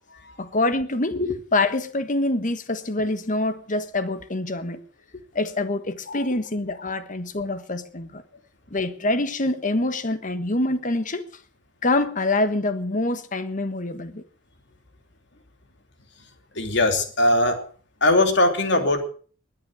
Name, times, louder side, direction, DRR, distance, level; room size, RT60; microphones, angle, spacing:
voice 1, 0.4-4.8 5.3-8.2 8.7-11.2 11.8-14.2, left 2 dB, 40° left, 1.4 m, -25 dB
voice 2, 16.5-17.6 18.0-19.0, left 1 dB, 65° left, 3.0 m, -21 dB
20.5 x 9.0 x 6.4 m
head